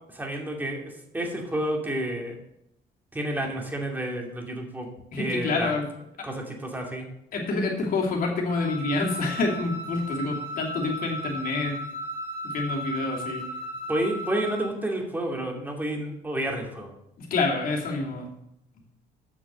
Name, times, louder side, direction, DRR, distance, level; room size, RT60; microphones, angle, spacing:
voice 1, 0.0-2.4 3.1-4.9 5.2-5.7 6.2-7.1 13.9-16.9, right 1 dB, 10° right, 0 dB, 2.4 m, -30 dB
voice 2, 5.1-5.9 7.3-11.8 12.4-13.4 17.2-18.3, left 3 dB, 60° left, -1 dB, 2.9 m, -27 dB
Wind instrument woodwind instrument, 8.5-14.7, right 1 dB, 85° right, 3.0 m, -35 dB
8.3 x 6.2 x 7.6 m, 0.81 s
cardioid pair, 110°, 17 cm